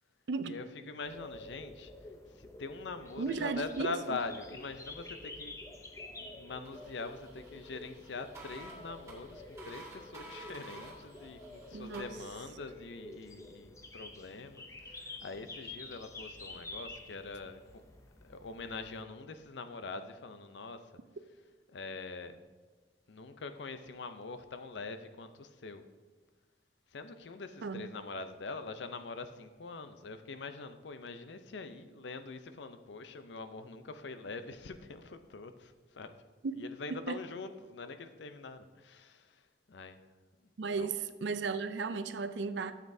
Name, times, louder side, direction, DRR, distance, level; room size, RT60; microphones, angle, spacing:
voice 1, 0.4-1.9 2.3-5.6 6.1-17.8 18.2-20.9 21.7-22.4 23.1-25.8 26.9-36.1 36.5-40.0 40.7-40.9, left 3 dB, 80° left, 0.6 m, -44 dB
sound 1, 1.0-19.0, left 2 dB, 15° left, 0.5 m, -49 dB
voice 2, 3.2-4.2 11.7-12.1 27.6-27.9 36.4-36.5 36.9-37.2 40.6-42.7, right 4 dB, 80° right, 0.5 m, -35 dB
sound 2, 6.6-12.0, right 2 dB, 15° right, 1.9 m, -52 dB
12.5 x 7.5 x 2.7 m
head